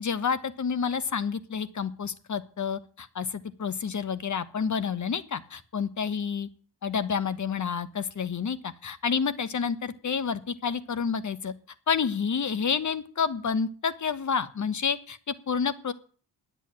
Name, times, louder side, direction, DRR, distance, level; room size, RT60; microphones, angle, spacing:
voice 1, 0.0-6.5 6.8-11.5 11.9-15.9, left 6 dB, 40° left, 14 dB, 1.2 m, -29 dB
10.5 x 8.3 x 8.8 m, 0.43 s
cardioid pair, 95°, 44 cm